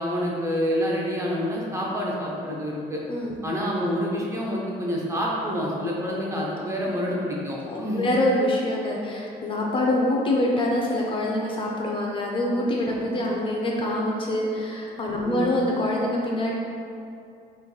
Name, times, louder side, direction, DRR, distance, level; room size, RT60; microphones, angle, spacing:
voice 1, 0.0-3.0 3.4-8.1 15.2-15.5, equal, 15° right, -4 dB, 0.6 m, -27 dB
voice 2, 7.7-16.5, left 1 dB, 30° left, -2 dB, 0.5 m, -25 dB
4.9 x 3.1 x 2.3 m, 2.5 s
cardioid pair, 110°, 17 cm